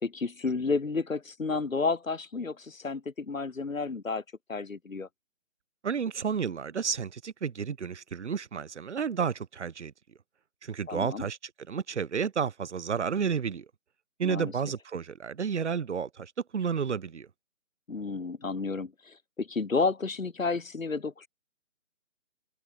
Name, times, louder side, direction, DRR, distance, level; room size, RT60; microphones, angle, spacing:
voice 1, 0.0-4.2 4.5-5.1 10.9-11.3 14.2-14.5 17.9-21.3, left 4 dB, 85° left, 3.5 m, -31 dB
voice 2, 5.8-9.9 10.6-11.4 11.7-13.7 14.2-17.3, right 6 dB, 60° right, 1.1 m, -31 dB
open air
hypercardioid pair, 165°, 39 cm